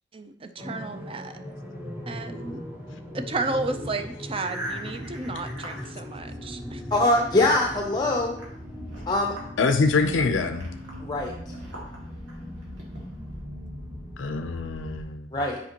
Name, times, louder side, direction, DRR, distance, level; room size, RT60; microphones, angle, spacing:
voice 1, 0.1-1.4 2.1-2.6 3.1-6.8, right 3 dB, 30° right, 8 dB, 0.5 m, -32 dB
sound 1, 0.6-15.0, equal, 10° right, 0.9 m, -39 dB
sound 2, 3.7-6.9 7.3-13.4, right 1 dB, 85° right, 2.1 m, -43 dB
voice 2, 6.9-8.3 9.1-9.3 11.0-11.5 15.3-15.6, left 2 dB, 20° left, 1 dB, 0.6 m, -23 dB
voice 3, 9.6-10.6 14.2-15.3, left 4 dB, 85° left, 7 dB, 0.5 m, -24 dB
8.3 x 5.2 x 2.9 m, 0.72 s
head